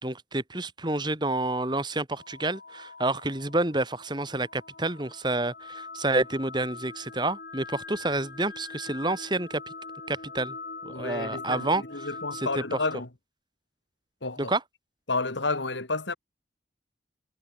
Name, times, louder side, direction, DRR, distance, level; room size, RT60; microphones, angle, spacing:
voice 1, 0.0-9.6 10.1-10.6 10.8-11.8 12.3-12.8 14.4-14.6, right 2 dB, 25° right, 3.0 m, -29 dB
sound 1, 2.1-13.0, left 4 dB, 55° left, 3.1 m, -43 dB
voice 2, 10.9-13.1 14.2-14.5 15.1-16.2, left 3 dB, 80° left, 2.9 m, -31 dB
head